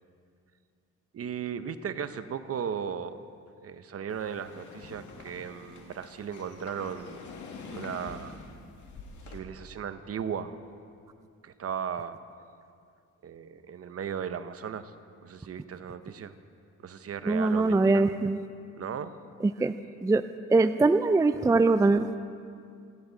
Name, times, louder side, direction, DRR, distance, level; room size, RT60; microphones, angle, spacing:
voice 1, 1.1-3.2 3.6-7.3 7.7-8.4 9.3-10.5 11.4-12.2 13.2-14.9 15.2-16.3 16.8-18.0 18.8-19.1, right 7 dB, 50° right, 11 dB, 0.9 m, -36 dB
sound 1, 4.1-9.4, left 4 dB, 75° left, 2.2 m, -46 dB
voice 2, 17.3-18.4 19.4-19.7 20.0-20.2 20.5-22.2, right 3 dB, 10° right, 11 dB, 0.4 m, -22 dB
29.5 x 11.0 x 4.1 m, 2.3 s
cardioid pair, 90°, 30 cm